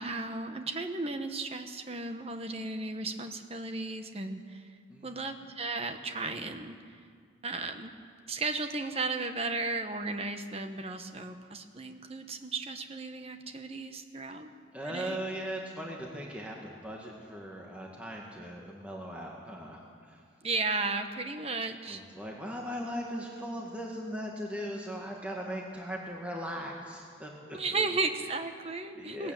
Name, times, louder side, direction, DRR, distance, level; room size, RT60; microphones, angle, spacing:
voice 1, 0.0-4.7 5.0-7.0 7.4-7.9 8.3-14.5 14.8-15.2 20.4-22.0 27.5-29.3, right 3 dB, 35° right, 7 dB, 1.2 m, -35 dB
voice 2, 14.7-20.2 21.9-27.9 28.9-29.3, equal, 5° right, -2 dB, 1.8 m, -39 dB
19.0 x 15.5 x 9.1 m, 2.1 s
head